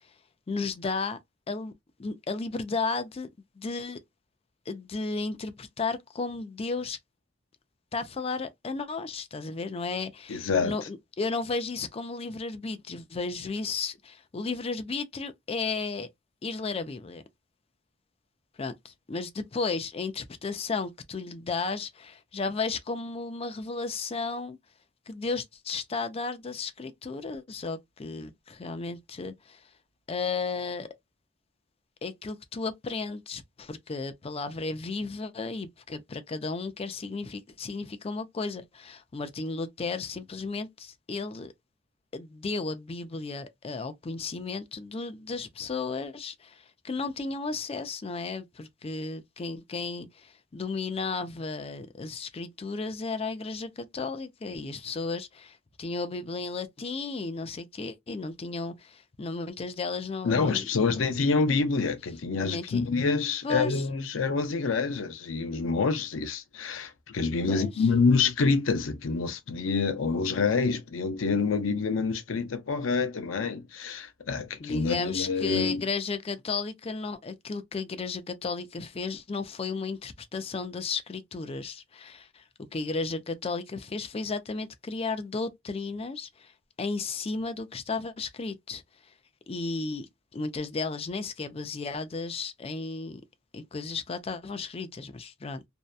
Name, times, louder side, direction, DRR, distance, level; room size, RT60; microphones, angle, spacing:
voice 1, 0.5-1.2 1.5-1.7 2.0-3.3 3.6-4.0 4.7-7.0 7.9-16.1 16.4-17.2 18.6-24.6 25.1-29.6 30.1-30.9 32.0-41.5 42.1-60.9 62.4-62.8 63.4-63.8 67.5-67.8 74.6-82.4 82.7-86.5 86.8-88.8 89.5-90.1 90.3-93.2 93.5-95.7, left 4 dB, 30° left, 0.4 m, -34 dB
voice 2, 10.3-10.7 60.2-75.8, left 4 dB, 85° left, 0.6 m, -27 dB
2.7 x 2.1 x 2.2 m
head